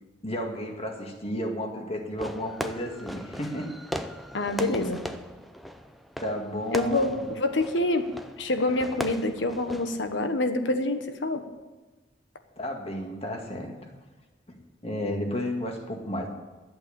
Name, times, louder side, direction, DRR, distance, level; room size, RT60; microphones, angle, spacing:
voice 1, 0.2-3.7 6.2-7.3 12.6-13.9 14.5-14.6 14.8-16.3, equal, 35° left, 2 dB, 2.0 m, -32 dB
Fireworks, 2.2-10.2, equal, ahead, 0.5 m, -38 dB
voice 2, 4.3-5.0 6.7-8.1 8.4-11.4, left 2 dB, 85° left, 8 dB, 1.3 m, -26 dB
11.5 x 8.0 x 8.8 m, 1.2 s
head